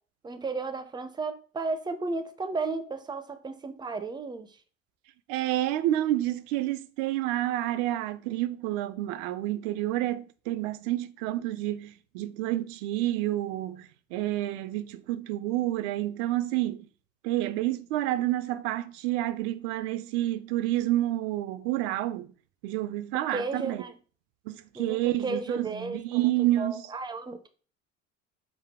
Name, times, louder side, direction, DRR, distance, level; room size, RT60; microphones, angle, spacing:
voice 1, 0.2-4.6 23.3-24.0 24.7-27.5, right 3 dB, 10° right, 0.5 m, -34 dB
voice 2, 5.3-16.9 17.2-22.3 22.6-23.8 24.5-26.8, right 15 dB, 55° right, 0.5 m, -29 dB
5.9 x 2.2 x 3.5 m
hypercardioid pair, 70°, 38 cm